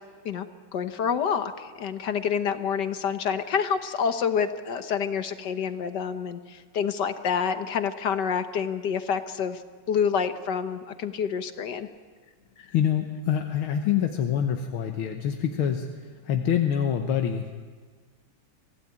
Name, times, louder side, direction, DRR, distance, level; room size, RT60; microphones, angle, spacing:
voice 1, 0.7-9.6 9.9-11.9, left 7 dB, 60° left, 9 dB, 1.5 m, -28 dB
voice 2, 12.7-17.5, left 9 dB, 90° left, 4 dB, 2.0 m, -26 dB
25.0 x 16.0 x 8.8 m, 1.5 s
omnidirectional pair, 2.3 m